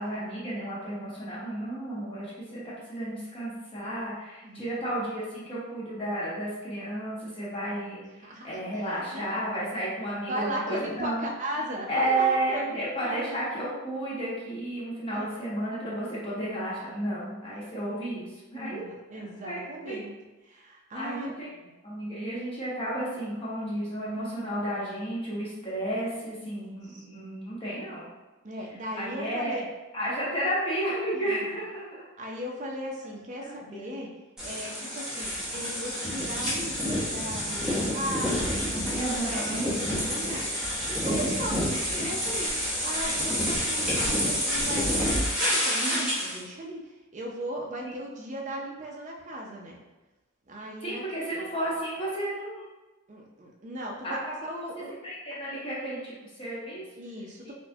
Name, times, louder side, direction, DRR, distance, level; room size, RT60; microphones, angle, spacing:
voice 1, 0.0-2.6 2.9-8.0 8.4-11.2 11.9-18.8 19.1-20.0 20.9-21.5 21.8-28.1 29.0-29.6 29.9-31.9 33.4-33.9 38.9-39.6 45.8-46.2 50.8-52.6 54.0-54.3 54.7-56.8, right 1 dB, 25° left, -7 dB, 0.9 m, -32 dB
voice 2, 4.4-4.7 8.2-8.6 8.9-9.3 10.3-13.3 15.1-15.3 17.5-17.8 18.5-20.1 20.4-21.7 26.8-27.0 28.4-29.6 31.1-31.5 32.2-34.1 34.4-40.4 40.8-41.6 41.9-45.1 45.4-49.8 50.5-51.0 53.1-54.9 57.0-57.5, equal, 35° right, -1 dB, 0.4 m, -37 dB
sound 1, 34.4-46.4, equal, 5° right, 0.7 m, -28 dB
4.2 x 2.1 x 2.7 m, 1.1 s
head